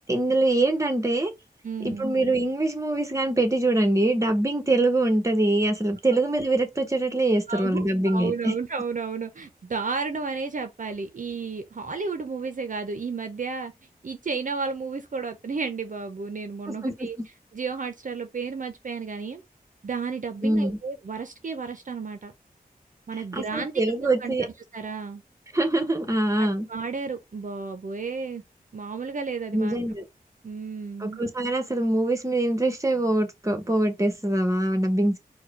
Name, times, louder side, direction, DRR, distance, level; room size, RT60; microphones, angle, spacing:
voice 1, 0.1-1.3 1.8-8.5 16.7-17.1 20.4-20.8 23.3-24.4 25.5-26.7 29.5-30.0 31.0-35.2, right 2 dB, 20° right, 1.2 m, -24 dB
voice 2, 1.6-2.1 7.5-13.7 14.0-17.2 17.5-19.4 19.8-22.3 23.1-23.7 24.2-24.4 24.7-25.2 26.3-28.4 28.7-29.8 30.4-31.2, right 4 dB, 55° right, 0.6 m, -32 dB
4.6 x 2.2 x 4.7 m
wide cardioid pair, 75°, 16 cm